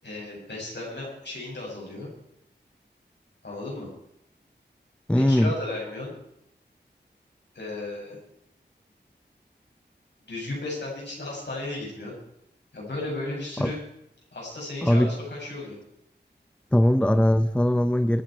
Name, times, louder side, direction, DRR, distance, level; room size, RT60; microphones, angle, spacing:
voice 1, 0.0-2.1 3.4-3.9 5.1-6.1 7.5-8.2 10.3-12.2 12.7-13.8 14.3-15.8, left 2 dB, 70° left, -3 dB, 7.2 m, -34 dB
voice 2, 5.1-5.5 13.6-13.7 14.8-15.1 16.7-18.2, equal, 5° left, 10 dB, 0.7 m, -20 dB
25.0 x 9.6 x 4.6 m, 0.75 s
wide cardioid pair, 75°, 18 cm